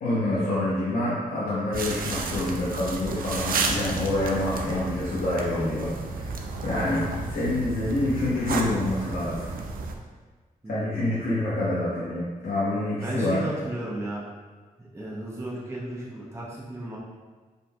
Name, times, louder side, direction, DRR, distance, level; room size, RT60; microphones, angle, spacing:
voice 1, 0.0-9.4 10.7-13.4, left 1 dB, 90° left, -9 dB, 0.8 m, -27 dB
sound 1, 1.7-9.9, right 3 dB, 70° right, 0.4 m, -32 dB
voice 2, 10.6-11.2 13.0-14.2 14.8-17.0, right 1 dB, 20° right, -5 dB, 0.7 m, -34 dB
5.1 x 2.6 x 2.3 m, 1.4 s
cardioid pair, 80°, 15 cm